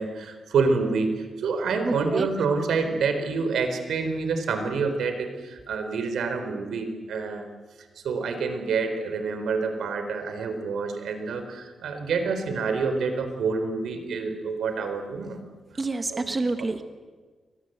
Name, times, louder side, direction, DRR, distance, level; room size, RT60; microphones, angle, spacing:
voice 1, 0.0-7.5 8.0-15.4 16.1-16.3, right 4 dB, 85° right, 7 dB, 4.1 m, -27 dB
voice 2, 1.8-2.3 15.8-16.8, right 3 dB, 20° right, 8 dB, 1.4 m, -28 dB
29.5 x 24.0 x 8.1 m, 1.4 s
wide cardioid pair, 165°, 0 cm